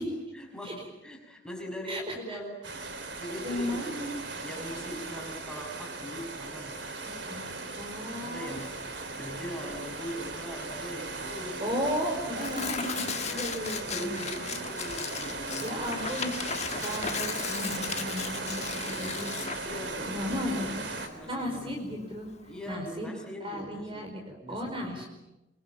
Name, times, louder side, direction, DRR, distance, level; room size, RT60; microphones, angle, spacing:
voice 1, 0.3-2.6 3.2-4.0 4.4-6.9 8.2-8.8 9.1-11.7 12.8-16.3 19.6-20.7 21.1-22.1 22.5-24.1 24.4-25.1, equal, 5° left, 0 dB, 6.1 m, -41 dB
voice 2, 1.9-2.4 3.4-4.1 7.1-8.5 11.6-14.1 15.6-19.3 20.0-20.8 21.2-22.3 22.6-23.1 23.4-25.1, equal, 30° right, 3 dB, 4.8 m, -35 dB
sound 1, 2.6-21.1, right 3 dB, 65° right, 4.0 m, -37 dB
Tearing, 8.5-22.7, left 7 dB, 35° left, 1.4 m, -38 dB
26.0 x 23.5 x 8.9 m, 0.98 s
head